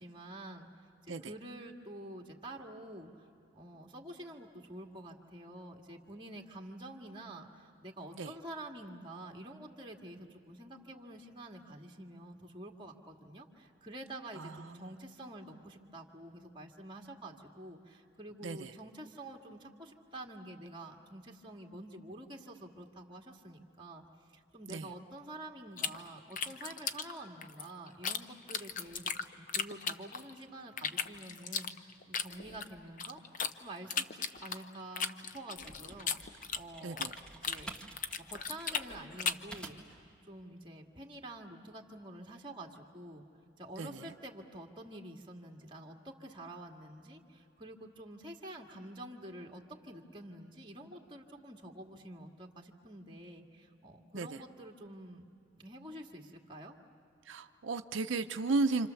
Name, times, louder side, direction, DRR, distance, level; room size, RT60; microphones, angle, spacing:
voice 1, 0.0-3.2 3.5-24.0 24.3-37.8 38.3-43.3 43.6-55.3 55.6-56.7, right 1 dB, 25° right, 1 dB, 1.9 m, -48 dB
voice 2, 14.4-14.9 18.4-18.7 24.7-24.9 36.8-37.1 43.8-44.1 54.1-54.4 57.3-58.9, right 3 dB, 85° right, 7 dB, 0.6 m, -35 dB
sound 1, 25.8-28.2 28.5-30.4 30.8-33.5 33.9-37.2 37.4-39.5, left 6 dB, 45° left, 0.8 m, -36 dB
sound 2, 35.6-40.0, right 2 dB, 5° left, 1.9 m, -50 dB
29.5 x 26.5 x 7.0 m, 2.8 s
head